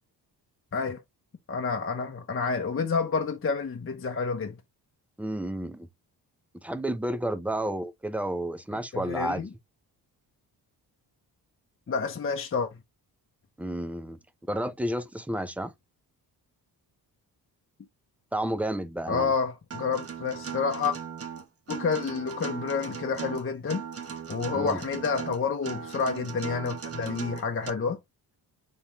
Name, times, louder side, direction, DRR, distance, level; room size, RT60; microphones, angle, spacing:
voice 1, 1.5-4.6 8.9-9.5 11.9-12.7 19.1-20.9 21.7-23.8 24.3-28.0, left 5 dB, 30° left, 0.8 m, -29 dB
voice 2, 5.2-5.9 6.6-9.4 13.6-14.2 14.5-15.7 18.3-19.3 24.5-24.8, right 1 dB, 5° right, 0.6 m, -31 dB
Acoustic guitar, 19.7-27.7, right 7 dB, 35° right, 1.0 m, -38 dB
4.4 x 3.4 x 2.9 m
cardioid pair, 80°, 41 cm